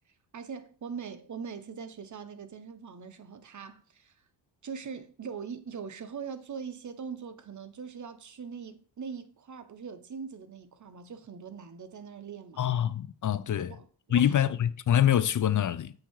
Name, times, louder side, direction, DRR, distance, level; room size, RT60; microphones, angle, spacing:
voice 1, 0.3-4.1 4.6-12.6 13.7-14.6, right 6 dB, 40° right, 0.9 m, -42 dB
voice 2, 12.6-13.8 14.1-15.9, left 10 dB, 45° left, 0.6 m, -25 dB
7.6 x 2.9 x 4.6 m
cardioid pair, 60°, 44 cm